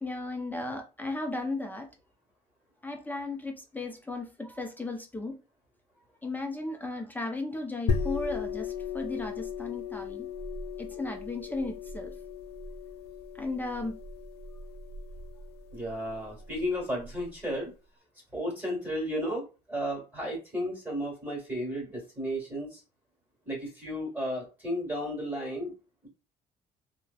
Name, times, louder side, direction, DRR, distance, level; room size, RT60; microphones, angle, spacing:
voice 1, 0.0-1.9 2.8-5.3 6.2-10.3 10.8-12.1 13.3-14.0, left 2 dB, 10° left, 0.5 m, -35 dB
sound 1, 7.9-17.2, left 5 dB, 80° left, 0.4 m, -36 dB
voice 2, 15.7-17.7 18.3-19.4 19.7-22.8 23.4-25.7 26.0-26.1, equal, 10° right, 1.5 m, -33 dB
3.0 x 2.1 x 2.3 m
cardioid pair, 110°, 17 cm